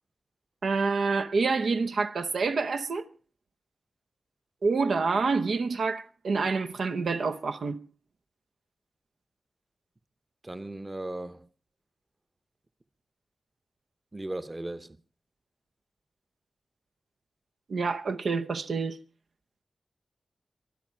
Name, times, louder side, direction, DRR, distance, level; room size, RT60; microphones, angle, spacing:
voice 1, 0.6-3.1 4.6-7.8 17.7-19.0, right 4 dB, 80° right, 0.9 m, -27 dB
voice 2, 10.4-11.5 14.1-15.0, right 1 dB, 25° right, 0.9 m, -37 dB
23.5 x 12.5 x 4.5 m
wide cardioid pair, 90°, 0 cm